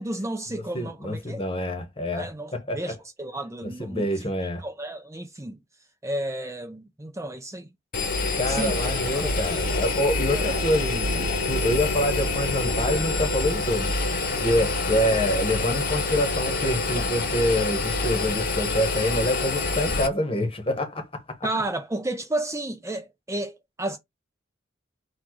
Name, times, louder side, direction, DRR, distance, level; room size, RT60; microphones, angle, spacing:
voice 1, 0.0-1.4 2.2-4.3 4.6-5.6 6.0-7.7 8.4-8.8 9.1-9.3 10.3-10.5 21.4-24.0, right 1 dB, 15° right, 0.5 m, -32 dB
voice 2, 0.7-2.9 3.6-4.6 8.3-14.0 14.4-21.4, left 1 dB, 30° left, 1.2 m, -26 dB
Engine, 7.9-20.1, left 3 dB, 45° left, 0.9 m, -26 dB
4.3 x 2.4 x 4.5 m
head